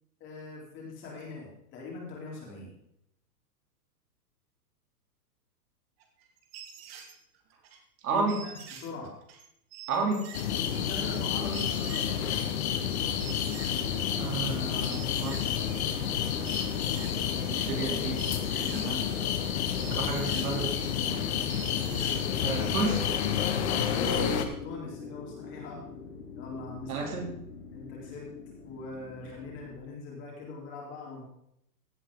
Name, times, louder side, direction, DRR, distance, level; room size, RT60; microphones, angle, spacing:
voice 1, 0.2-2.7 8.1-9.1 10.7-12.3 23.7-24.2 24.6-25.8 26.4-27.3 27.7-28.3 28.6-31.2, left 3 dB, 25° left, -2 dB, 3.3 m, -42 dB
sound 1, 6.0-7.8 8.3-14.3 14.7-16.2 16.5-22.3, right 8 dB, 35° right, 1.8 m, -47 dB
voice 2, 8.0-8.4 9.9-10.3 14.2-15.5 17.5-19.1 19.9-20.8 22.4-23.1 26.9-27.3, right 4 dB, 65° right, 2 dB, 3.3 m, -32 dB
sound 2, 10.3-24.4, left 8 dB, 40° left, 1.3 m, -29 dB
sound 3, 23.6-29.7, left 5 dB, 75° left, 3.2 m, -44 dB
16.0 x 8.1 x 3.8 m, 0.76 s
hypercardioid pair, 155°, 48 cm